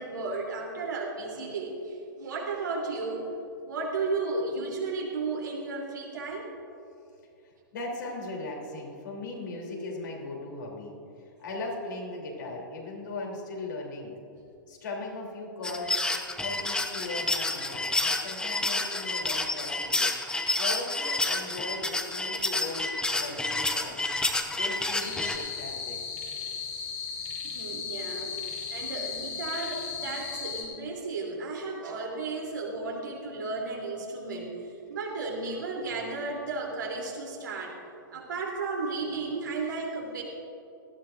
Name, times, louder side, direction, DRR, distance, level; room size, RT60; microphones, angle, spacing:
voice 1, 0.0-3.2 3.6-6.5 27.4-34.5 34.9-37.7 38.1-40.2, right 3 dB, 70° right, -2 dB, 3.1 m, -34 dB
voice 2, 7.7-10.9 11.4-14.2 14.7-16.0 16.4-20.1 20.5-24.1 24.5-26.0, left 2 dB, 65° left, -1 dB, 3.2 m, -38 dB
sound 1, 15.6-25.4, left 2 dB, 5° left, 0.9 m, -29 dB
sound 2, 25.0-30.6, left 6 dB, 50° left, 3.4 m, -36 dB
18.5 x 13.5 x 2.6 m, 2.6 s
figure-of-eight pair, 105°, 11 cm